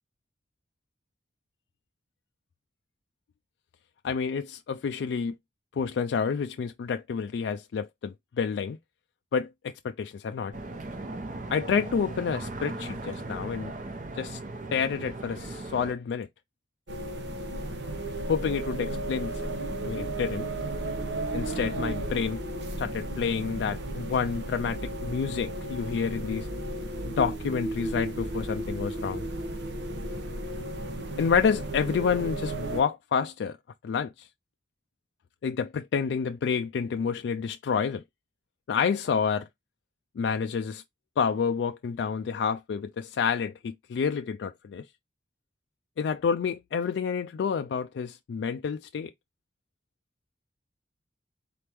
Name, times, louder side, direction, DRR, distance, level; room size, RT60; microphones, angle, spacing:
voice 1, 4.0-5.3 5.7-8.8 9.3-10.5 11.5-13.7 14.2-14.4 14.7-16.3 18.3-19.5 19.8-20.5 21.3-22.4 22.8-26.5 27.0-29.3 31.2-33.6 33.8-34.3 35.4-38.0 38.7-39.5 40.2-40.8 41.2-44.9 46.0-49.1, left 6 dB, 75° left, 0.3 m, -29 dB
sound 1, 10.5-15.9, right 2 dB, 45° right, 0.7 m, -38 dB
sound 2, 16.9-32.8, right 1 dB, 85° right, 0.9 m, -34 dB
4.2 x 3.4 x 3.0 m
head